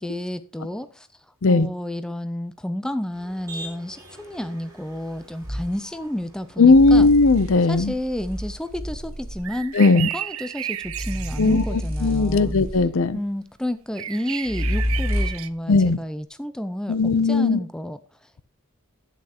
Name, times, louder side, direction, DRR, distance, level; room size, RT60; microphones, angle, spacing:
voice 1, 0.0-7.1 7.7-12.6 13.1-18.4, left 1 dB, 5° left, 0.4 m, -31 dB
Motor vehicle (road), 3.1-8.7, right 1 dB, 15° right, 3.7 m, -45 dB
sound 1, 5.4-5.7 6.6-9.6 10.8-13.1 14.5-15.6, equal, 40° right, 3.8 m, -29 dB
voice 2, 6.6-7.9 9.7-10.1 11.4-13.2 15.7-16.0 16.9-17.6, left 3 dB, 60° left, 0.6 m, -17 dB
sound 2, 7.4-7.5 9.4-11.8 14.0-15.5, right 11 dB, 65° right, 0.5 m, -33 dB
10.5 x 8.5 x 2.9 m
head